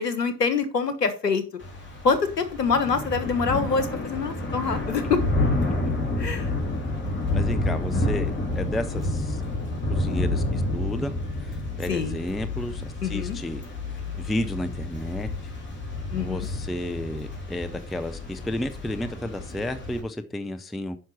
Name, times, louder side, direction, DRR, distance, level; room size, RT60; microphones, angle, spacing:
voice 1, 0.0-1.4 2.0-5.2 6.2-6.5 11.9-12.2 13.0-13.4 16.1-16.5, left 5 dB, 90° left, 1.5 m, -25 dB
Thunder / Rain, 1.6-20.0, left 2 dB, 25° left, 3.3 m, -29 dB
voice 2, 7.3-9.4 9.9-11.1 11.4-13.6 14.2-15.3 16.2-21.0, left 1 dB, ahead, 0.3 m, -32 dB
9.7 x 5.8 x 4.4 m
hypercardioid pair, 85°, 48 cm